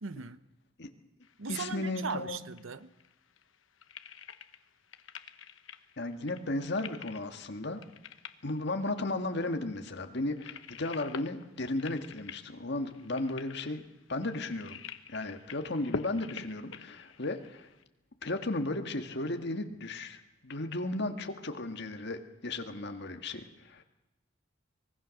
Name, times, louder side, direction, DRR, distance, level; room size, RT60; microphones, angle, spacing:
voice 1, 0.0-0.4 1.4-2.9, right 5 dB, 85° right, 14 dB, 0.9 m, -38 dB
sound 1, 1.2-17.8, left 5 dB, 75° left, 1.1 m, -47 dB
voice 2, 1.5-2.4 6.0-7.8 8.4-14.8 15.1-17.7 18.2-23.8, left 2 dB, 60° left, 6 dB, 1.8 m, -35 dB
24.0 x 20.5 x 6.5 m, 0.99 s
head